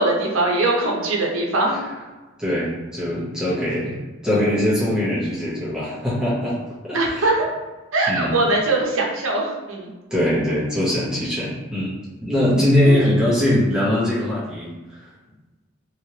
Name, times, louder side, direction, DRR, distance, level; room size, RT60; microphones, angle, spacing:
voice 1, 0.0-1.8 6.9-7.5 7.9-9.9 12.8-13.1, right 2 dB, 85° right, -1 dB, 0.7 m, -21 dB
voice 2, 2.4-4.0 4.2-6.6 6.8-7.3 8.1-8.4 10.1-11.9 12.2-15.1, left 1 dB, 5° right, -10 dB, 0.8 m, -21 dB
3.1 x 2.9 x 2.8 m, 1.2 s
head